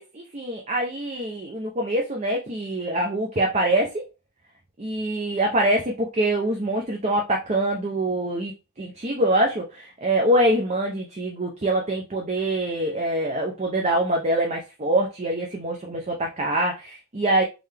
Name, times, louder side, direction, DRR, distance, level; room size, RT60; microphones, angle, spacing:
voice 1, 0.0-4.0 4.8-8.5 8.8-17.4, right 1 dB, 30° right, 1 dB, 0.6 m, -24 dB
3.8 x 3.2 x 3.3 m, 0.28 s
head